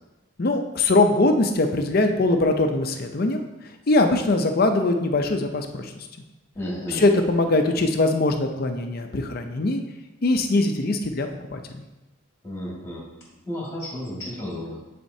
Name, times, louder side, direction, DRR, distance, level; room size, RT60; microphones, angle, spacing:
voice 1, 0.4-3.4 3.9-5.9 6.9-9.8 10.2-11.8, left 2 dB, 45° left, 5 dB, 0.5 m, -22 dB
voice 2, 6.6-7.0 12.4-13.0 13.5-14.8, left 1 dB, 10° left, -5 dB, 1.9 m, -32 dB
10.0 x 4.3 x 2.7 m, 1.0 s
head